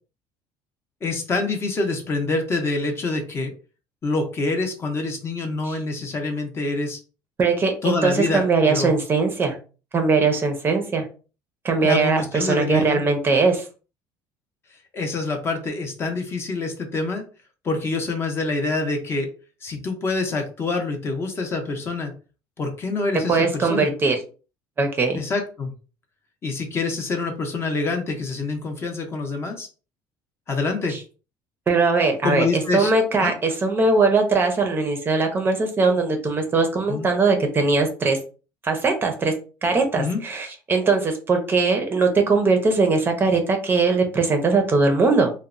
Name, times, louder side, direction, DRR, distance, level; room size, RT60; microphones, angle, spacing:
voice 1, 1.0-3.5 4.0-7.0 7.8-8.9 11.8-13.0 14.9-17.2 17.6-19.3 19.6-22.1 22.6-23.9 25.1-25.7 26.4-29.7 30.5-30.9 32.2-32.9 33.2-33.3 36.9-37.1 39.9-40.2, left 3 dB, 30° left, 4 dB, 0.5 m, -26 dB
voice 2, 7.4-9.6 9.9-11.0 11.6-13.7 23.3-24.2 24.8-25.2 30.9-31.0 31.7-38.2 38.6-39.3 39.6-45.3, right 4 dB, 25° right, 5 dB, 0.5 m, -20 dB
2.9 x 2.0 x 2.4 m, 0.35 s
cardioid pair, 140°, 9 cm